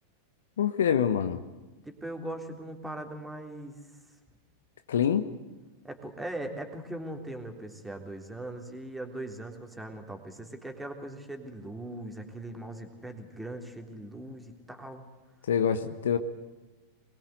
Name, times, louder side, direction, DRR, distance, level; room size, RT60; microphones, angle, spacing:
voice 1, 0.6-1.4 4.9-5.3 15.5-16.2, left 8 dB, 65° left, 11 dB, 1.2 m, -25 dB
voice 2, 1.8-3.8 5.8-15.1, right 1 dB, 5° right, 4 dB, 3.5 m, -40 dB
24.5 x 21.5 x 8.2 m, 1.2 s
figure-of-eight pair, 90°, 0 cm